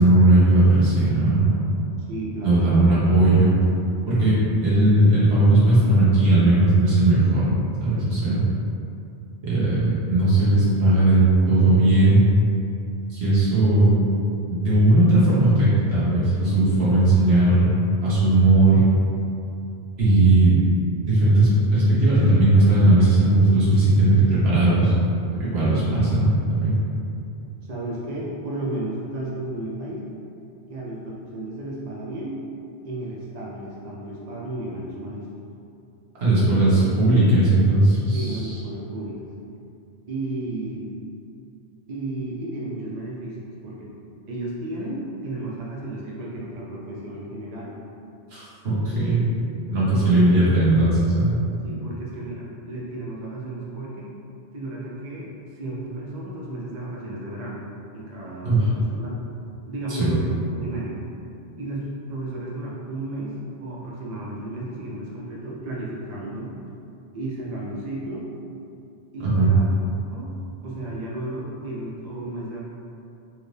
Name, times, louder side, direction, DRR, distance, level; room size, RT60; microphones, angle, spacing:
voice 1, 0.0-1.6 2.4-3.5 4.1-7.5 7.8-8.4 9.4-12.2 13.1-14.1 14.6-17.7 18.0-18.8 20.0-20.6 21.0-24.9 25.4-26.7 36.2-38.6 48.3-49.3 49.7-51.4 58.4-58.6 59.9-60.1 69.2-69.5, right 2 dB, 70° right, -9 dB, 1.5 m, -18 dB
voice 2, 2.1-2.7 27.7-30.1 30.7-32.4 32.8-35.3 36.5-36.9 38.1-39.2 40.1-40.9 41.9-43.9 44.3-47.7 50.1-50.4 51.6-54.1 54.5-57.6 57.9-59.2 59.7-61.0 61.6-66.5 67.1-68.3 69.1-69.7 70.1-70.4 70.6-72.6, right 1 dB, 50° right, -5 dB, 0.6 m, -33 dB
4.4 x 2.6 x 3.2 m, 2.6 s
omnidirectional pair, 1.1 m